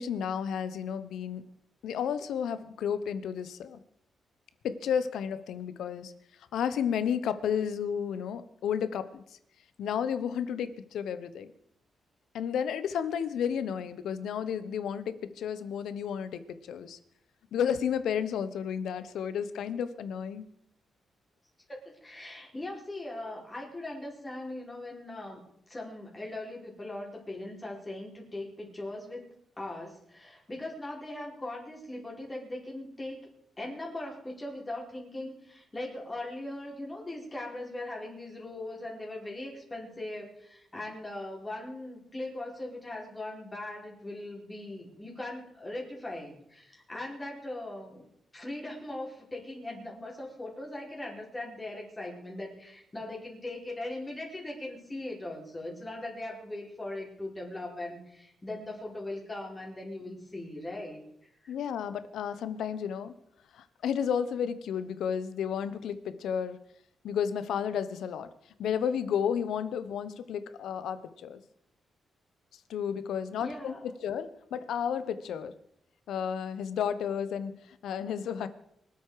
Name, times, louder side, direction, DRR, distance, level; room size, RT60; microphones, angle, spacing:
voice 1, 0.0-1.4 1.8-3.8 4.6-6.1 6.5-9.2 9.8-11.5 12.3-16.4 16.7-17.0 17.5-20.4 61.5-63.1 63.5-66.6 67.0-68.3 68.6-71.4 72.7-75.5 76.1-77.6 77.8-78.5, left 8 dB, 85° left, 13 dB, 1.0 m, -32 dB
voice 2, 21.7-29.3 29.6-33.2 33.6-48.1 48.3-61.0 61.4-61.5 73.3-73.9, left 1 dB, 20° left, -1 dB, 4.6 m, -40 dB
24.0 x 8.2 x 4.9 m, 0.74 s
cardioid pair, 125°, 0 cm